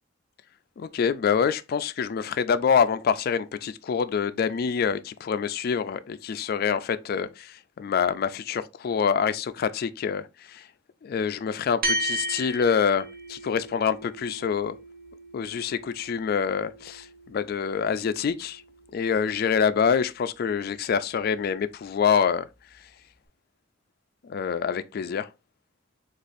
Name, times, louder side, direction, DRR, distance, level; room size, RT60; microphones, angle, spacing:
voice 1, 0.8-10.6 11.0-14.8 15.3-18.6 18.9-22.5 24.2-25.3, left 6 dB, 55° left, 0.3 m, -26 dB
sound 1, 11.8-20.5, right 1 dB, 50° right, 1.0 m, -36 dB
6.4 x 2.4 x 2.5 m
head